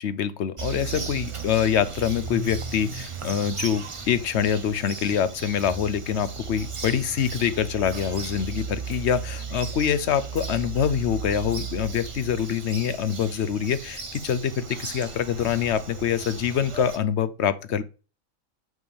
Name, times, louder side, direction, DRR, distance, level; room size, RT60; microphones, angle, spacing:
voice 1, 0.0-17.8, left 8 dB, 60° left, 1.0 m, -25 dB
Bird vocalization bird call bird song, 0.6-17.0, right 5 dB, 30° right, 0.7 m, -36 dB
9.4 x 3.7 x 6.8 m
omnidirectional pair, 1.4 m